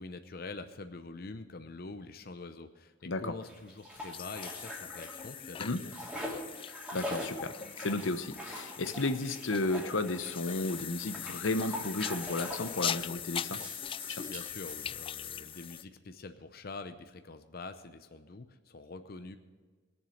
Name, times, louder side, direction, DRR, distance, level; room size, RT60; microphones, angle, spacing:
voice 1, 0.0-5.9 6.3-6.4 14.0-19.4, left 3 dB, 55° left, 8 dB, 0.7 m, -45 dB
sound 1, 3.4-5.4 5.6-12.8 13.3-15.4, equal, 5° right, 2.8 m, -43 dB
sound 2, 4.1-15.8, left 9 dB, 30° left, 0.3 m, -41 dB
voice 2, 6.9-13.6 14.1-14.2, left 2 dB, 90° left, 10 dB, 0.9 m, -33 dB
20.0 x 7.3 x 6.5 m, 1.4 s
head